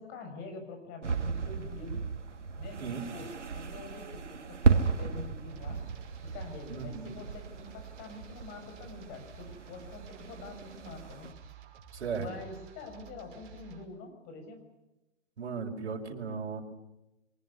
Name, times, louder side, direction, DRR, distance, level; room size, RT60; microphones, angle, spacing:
voice 1, 0.0-2.1 2.6-5.8 6.2-11.3 12.2-14.6, left 3 dB, 30° left, 6 dB, 6.2 m, -45 dB
sound 1, 1.0-11.3, right 5 dB, 90° right, 2.0 m, -34 dB
sound 2, 5.5-13.8, right 8 dB, 45° right, 5.8 m, -52 dB
voice 2, 6.7-7.2 11.9-12.3 15.4-16.6, right 5 dB, 65° right, 2 dB, 5.4 m, -36 dB
25.0 x 19.5 x 9.7 m, 0.95 s
hypercardioid pair, 135°, 35 cm